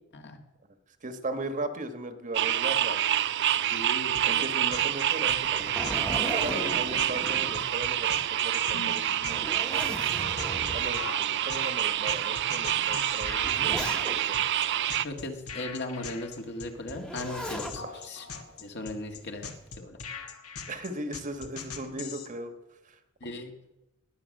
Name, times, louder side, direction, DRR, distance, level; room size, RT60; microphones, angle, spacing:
voice 1, 1.0-3.0 4.2-10.0 10.7-14.4 17.8-18.0 20.7-22.5 22.8-23.3, right 2 dB, 35° right, 8 dB, 1.3 m, -38 dB
sound 1, 2.3-15.0, right 12 dB, 55° right, 0.4 m, -27 dB
voice 2, 3.7-4.2 15.0-18.3 18.6-19.5 19.8-20.0 23.2-23.5, left 2 dB, 55° left, 4 dB, 1.8 m, -37 dB
sound 2, 4.1-22.3, left 5 dB, 85° left, 1.6 m, -41 dB
Zipper (clothing), 5.3-8.2 8.6-8.7 9.2-11.1 11.8-11.9 12.9-14.4 16.9-17.8 19.2-19.6, equal, 5° left, 1.1 m, -37 dB
20.5 x 8.8 x 6.5 m, 0.97 s
head